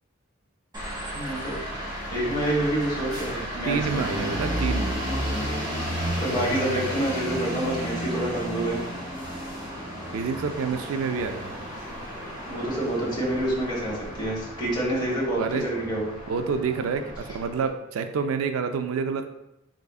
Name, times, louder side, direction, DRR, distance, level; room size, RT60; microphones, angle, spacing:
sound 1, 0.7-17.7, equal, 20° right, 1.2 m, -33 dB
voice 1, 1.1-1.5 2.1-4.0 6.2-8.8 12.5-16.1, right 1 dB, 20° left, -4 dB, 1.1 m, -27 dB
voice 2, 3.6-5.0 10.1-11.6 15.4-15.6 16.3-19.3, right 5 dB, 80° right, 8 dB, 0.3 m, -28 dB
3.8 x 3.4 x 2.3 m, 0.86 s
head